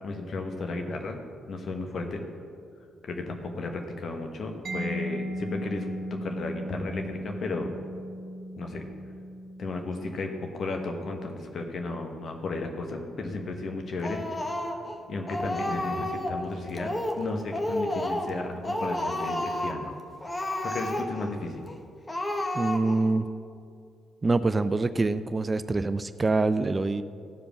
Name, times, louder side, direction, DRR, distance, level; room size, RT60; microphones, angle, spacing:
voice 1, 0.0-1.2 1.5-2.2 3.1-7.7 8.6-8.8 9.6-14.3 15.1-16.9 17.2-19.9 20.6-21.7, left 3 dB, 50° left, 3 dB, 1.3 m, -34 dB
Mallet percussion, 4.6-12.2, equal, 50° right, 1.1 m, -38 dB
Speech, 14.0-14.9 15.3-16.4 16.7-17.2 17.5-18.4 18.6-19.8 20.2-21.3 21.6-21.8 22.1-23.1, left 1 dB, 25° left, 1.2 m, -31 dB
voice 2, 22.5-23.3 24.2-27.0, right 3 dB, 30° right, 13 dB, 0.4 m, -25 dB
14.5 x 5.1 x 6.0 m, 2.3 s
figure-of-eight pair, 40°, 0 cm